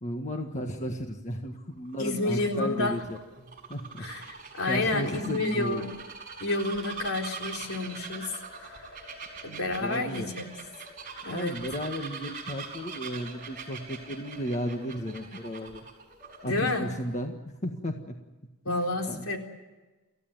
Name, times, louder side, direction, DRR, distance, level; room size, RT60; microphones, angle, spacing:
voice 1, 0.0-5.8 9.8-10.3 11.3-15.8 16.4-17.3 17.6-18.2 18.7-19.3, equal, 35° left, 4 dB, 1.6 m, -34 dB
Bird vocalization bird call bird song, 1.8-16.8, right 5 dB, 40° right, 5.2 m, -43 dB
voice 2, 2.0-3.1 4.0-4.3 4.5-5.9 6.4-8.9 9.4-10.4 11.2-11.6 16.4-16.9 18.6-19.4, left 2 dB, 70° left, 2 dB, 4.0 m, -30 dB
28.0 x 15.5 x 9.3 m, 1.2 s
head